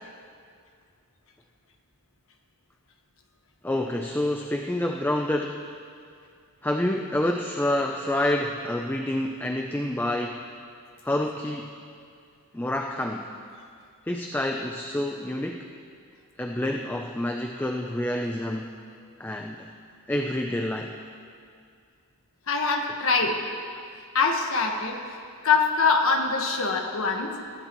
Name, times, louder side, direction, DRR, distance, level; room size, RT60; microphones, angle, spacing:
voice 1, 3.6-5.6 6.6-10.4 11.0-11.7 12.5-13.3 14.1-15.7 16.4-18.7 19.2-19.7 20.1-20.9, left 1 dB, 10° left, 2 dB, 0.5 m, -28 dB
voice 2, 22.5-23.4 24.1-25.0 25.4-27.3, left 4 dB, 65° left, 2 dB, 1.4 m, -23 dB
19.0 x 14.5 x 3.1 m, 2.3 s
head